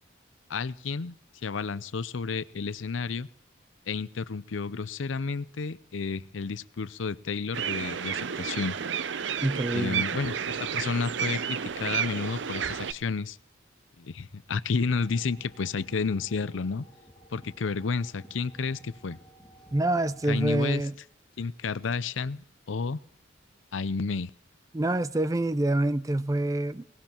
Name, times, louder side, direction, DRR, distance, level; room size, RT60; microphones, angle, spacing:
voice 1, 0.5-1.2 1.4-3.3 3.9-8.8 9.7-13.4 14.0-16.8 17.3-19.2 20.3-20.8 21.4-23.0 23.7-24.3, left 4 dB, 80° left, 0.6 m, -31 dB
Riverside Birds, 7.5-12.9, right 7 dB, 65° right, 0.5 m, -31 dB
voice 2, 9.4-10.0 19.7-20.9 24.7-26.8, right 1 dB, 15° right, 0.5 m, -26 dB
sound 1, 14.9-20.4, equal, 5° left, 2.5 m, -53 dB
21.5 x 18.5 x 3.0 m
head